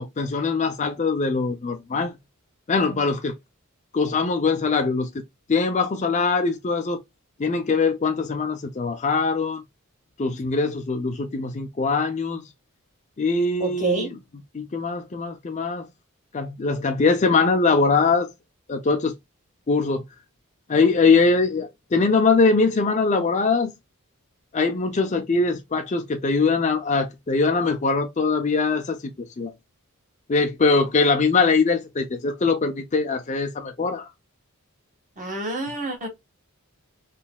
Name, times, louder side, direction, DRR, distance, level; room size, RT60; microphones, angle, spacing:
voice 1, 0.0-2.1 2.7-3.3 3.9-5.1 5.5-7.0 7.4-9.6 10.2-12.4 13.2-14.1 14.5-15.8 16.3-18.3 18.7-19.1 19.7-20.0 20.7-23.7 24.5-29.0 29.4-29.5 30.3-34.1, left 4 dB, 35° left, 0.5 m, -22 dB
voice 2, 13.6-14.1 35.2-36.1, right 3 dB, 35° right, 1.7 m, -27 dB
4.0 x 3.2 x 2.2 m
head